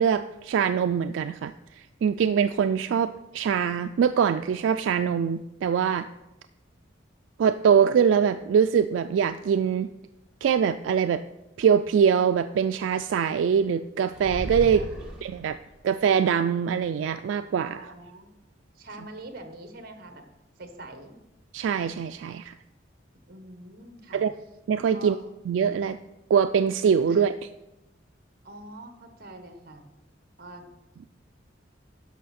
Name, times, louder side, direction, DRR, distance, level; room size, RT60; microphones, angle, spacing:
voice 1, 0.0-6.1 7.4-9.9 10.4-11.2 11.6-14.8 15.2-15.6 15.8-17.9 21.5-22.5 24.1-24.3 24.7-25.2 25.5-26.0 26.3-27.3, right 7 dB, 80° right, 10 dB, 0.3 m, -23 dB
sound 1, 14.1-15.8, right 1 dB, 5° right, 1.4 m, -35 dB
voice 2, 17.7-18.3 18.8-20.2 20.6-21.2 23.3-24.2 24.9-25.2 27.1-27.3 28.4-29.9 30.4-30.7, right 2 dB, 50° right, 6 dB, 1.1 m, -44 dB
12.0 x 5.5 x 4.2 m, 0.96 s
head